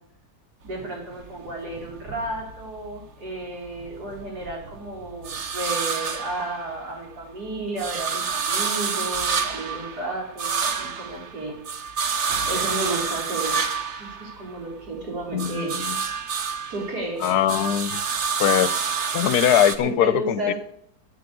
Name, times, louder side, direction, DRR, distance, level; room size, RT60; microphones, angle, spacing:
voice 1, 0.6-11.6 12.5-13.6 14.0-15.9 16.7-17.2 19.8-20.5, right 2 dB, 70° right, 4.4 m, -32 dB
sound 1, 0.7-3.0 3.4-7.1 7.5-14.9 15.2-19.8, right 6 dB, 50° right, 1.2 m, -29 dB
voice 2, 15.3-16.0 17.2-18.0 18.4-18.9 19.1-20.5, left 10 dB, 75° left, 1.2 m, -22 dB
11.0 x 8.6 x 8.4 m
omnidirectional pair, 1.7 m